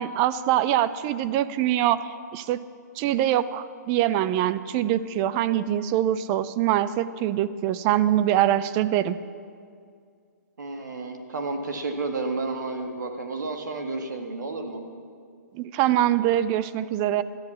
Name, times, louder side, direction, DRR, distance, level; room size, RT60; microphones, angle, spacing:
voice 1, 0.0-2.6 3.0-9.2 15.5-17.2, right 12 dB, 25° right, 14 dB, 0.4 m, -24 dB
voice 2, 10.6-14.8, right 3 dB, 75° right, 4 dB, 1.8 m, -31 dB
13.0 x 10.5 x 7.3 m, 2.2 s
hypercardioid pair, 140°, 10 cm